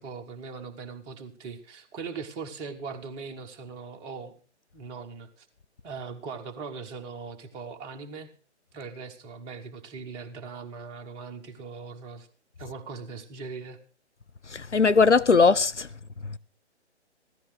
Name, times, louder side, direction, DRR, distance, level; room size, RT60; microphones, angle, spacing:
voice 1, 0.0-4.4 4.7-5.5 5.8-8.3 8.7-12.3 12.6-13.8, right 5 dB, 15° right, 1.2 m, -40 dB
voice 2, 14.5-15.9 16.2-16.4, left 4 dB, 80° left, 0.9 m, -20 dB
16.0 x 13.5 x 4.9 m
figure-of-eight pair, 135°, 35 cm